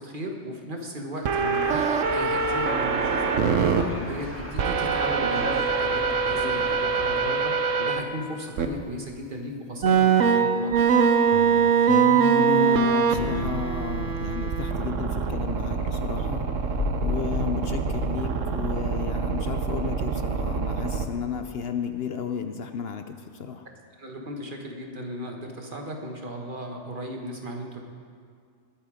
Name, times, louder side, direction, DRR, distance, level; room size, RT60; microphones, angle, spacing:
voice 1, 0.0-10.7 24.0-27.8, equal, 45° right, 2 dB, 1.6 m, -36 dB
sound 1, 1.2-3.8 4.6-8.0 8.6-8.7 9.8-21.0, right 5 dB, 90° right, 1.2 m, -24 dB
sound 2, 1.6-7.3, right 1 dB, 10° right, 1.8 m, -36 dB
sound 3, 11.2-14.3 14.6-19.6, left 8 dB, 85° left, 1.0 m, -37 dB
voice 2, 12.3-16.5 17.0-23.7, left 7 dB, 60° left, 8 dB, 0.8 m, -33 dB
20.5 x 9.0 x 5.0 m, 2.2 s
omnidirectional pair, 1.3 m